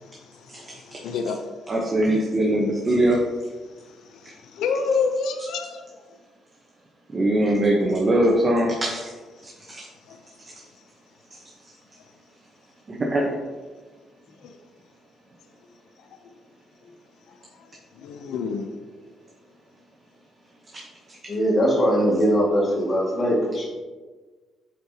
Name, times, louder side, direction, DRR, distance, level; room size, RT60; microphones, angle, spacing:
voice 1, 1.0-1.4 4.6-5.8 18.0-18.7, left 5 dB, 85° left, 6 dB, 0.5 m, -26 dB
voice 2, 1.7-3.2 7.1-9.1 9.7-9.8 12.9-13.4 20.7-20.8 21.1-21.2, right 1 dB, 35° right, -1 dB, 0.9 m, -21 dB
voice 3, 21.3-23.6, equal, 40° left, -3 dB, 1.9 m, -21 dB
8.3 x 4.5 x 2.8 m, 1.4 s
cardioid pair, 90°, 0 cm